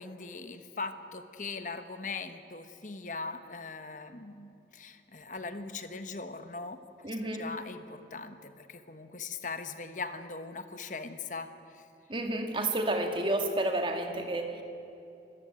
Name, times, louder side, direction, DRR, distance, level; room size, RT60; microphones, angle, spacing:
voice 1, 0.0-7.1 7.4-11.5 11.7-11.8, left 4 dB, 45° left, 9 dB, 1.2 m, -40 dB
voice 2, 7.0-7.5 12.1-14.6, right 1 dB, 30° right, 4 dB, 2.1 m, -30 dB
26.0 x 14.5 x 9.2 m, 2.8 s
head